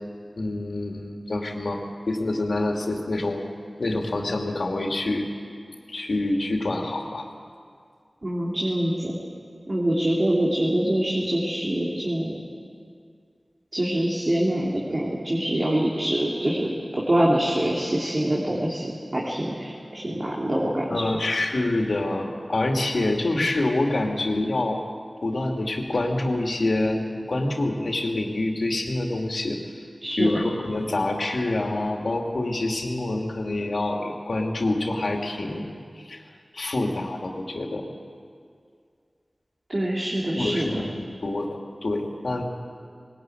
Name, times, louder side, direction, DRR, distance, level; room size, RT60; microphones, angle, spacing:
voice 1, 0.4-1.8 2.1-3.5 3.8-5.3 5.9-7.2 20.9-24.8 25.2-29.6 30.2-35.6 36.0-36.2 36.5-37.9 40.3-41.5 41.8-42.4, left 2 dB, 85° left, 2 dB, 2.6 m, -26 dB
voice 2, 8.2-9.1 9.7-12.4 13.7-16.7 17.0-21.1 30.0-30.4 39.7-40.8, right 1 dB, 45° right, -4 dB, 3.2 m, -25 dB
20.5 x 18.5 x 9.2 m, 2.2 s
wide cardioid pair, 65°, 0 cm